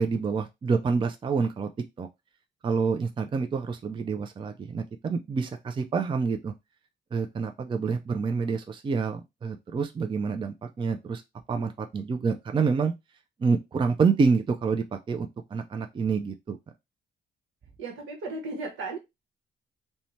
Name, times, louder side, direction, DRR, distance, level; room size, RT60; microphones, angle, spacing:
voice 1, 0.0-1.7 2.0-2.1 2.6-6.5 7.1-11.2 11.5-12.9 13.4-16.6, right 5 dB, 25° right, 0.4 m, -27 dB
voice 2, 17.8-19.0, right 3 dB, 80° right, 1.0 m, -35 dB
2.7 x 2.1 x 3.0 m
cardioid pair, 90°, 20 cm